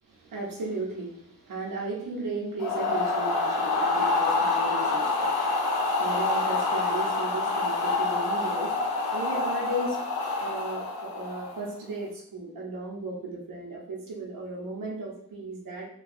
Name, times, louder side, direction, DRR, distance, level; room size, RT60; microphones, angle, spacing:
voice 1, 0.0-10.0 10.3-15.9, right 2 dB, 65° right, -3 dB, 0.7 m, -36 dB
sound 1, 2.6-11.7, left 3 dB, 85° left, 0.6 m, -27 dB
2.7 x 2.2 x 2.4 m, 0.72 s
wide cardioid pair, 165°, 36 cm